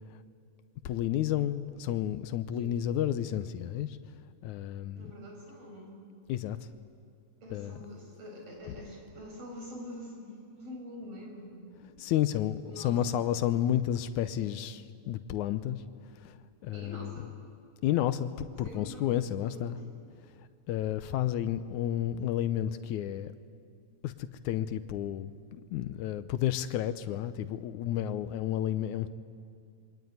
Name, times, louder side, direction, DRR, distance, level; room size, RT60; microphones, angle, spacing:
voice 1, 0.8-4.0 4.4-5.1 6.3-6.6 7.5-7.8 12.0-15.8 16.2-17.2 17.8-19.8 20.3-23.3 24.0-29.1, left 11 dB, 80° left, 1.8 m, -31 dB
voice 2, 5.0-6.0 7.4-13.2 16.7-17.3 18.6-19.8, left 1 dB, 40° right, 6.7 m, -46 dB
27.0 x 23.5 x 9.4 m
omnidirectional pair, 4.4 m